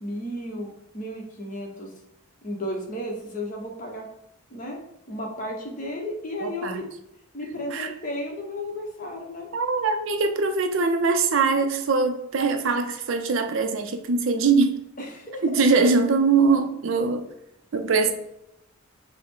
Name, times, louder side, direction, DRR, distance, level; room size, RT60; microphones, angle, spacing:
voice 1, 0.0-0.7 0.9-1.9 2.4-4.0 4.5-4.8 5.1-6.9 7.3-9.5 15.0-15.4, left 1 dB, 35° left, 0 dB, 0.9 m, -33 dB
voice 2, 6.4-6.8 7.7-7.9 9.5-14.8 15.4-17.3 17.7-18.1, right 4 dB, 60° right, 7 dB, 0.4 m, -22 dB
5.5 x 2.1 x 3.6 m, 0.80 s
head